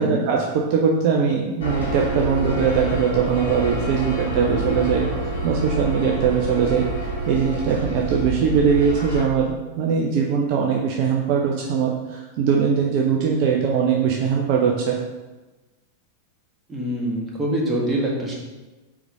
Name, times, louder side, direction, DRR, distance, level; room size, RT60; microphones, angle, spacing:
voice 1, 0.0-5.1 5.4-15.0, right 6 dB, 45° right, 0 dB, 0.7 m, -21 dB
sound 1, 1.6-9.2, right 1 dB, 70° left, 2.0 m, -28 dB
voice 2, 16.7-18.4, right 1 dB, 15° right, -3 dB, 1.8 m, -25 dB
5.0 x 4.7 x 5.2 m, 1.1 s
figure-of-eight pair, 90°, 0 cm